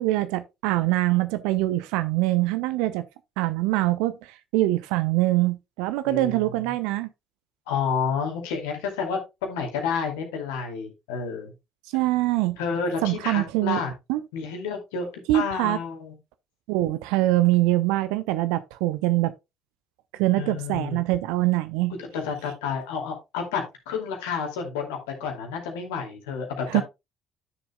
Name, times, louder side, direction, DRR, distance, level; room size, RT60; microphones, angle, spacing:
voice 1, 0.0-3.0 3.4-7.1 11.9-12.6 13.0-13.8 14.1-14.2 15.3-15.8 16.7-19.3 20.1-21.9 26.7-26.8, right 17 dB, 65° right, 0.6 m, -23 dB
voice 2, 6.0-6.6 7.7-11.5 12.6-13.9 14.3-16.2 20.4-21.0 22.0-26.8, left 6 dB, 65° left, 2.4 m, -30 dB
12.0 x 6.9 x 2.2 m
figure-of-eight pair, 50°, 0 cm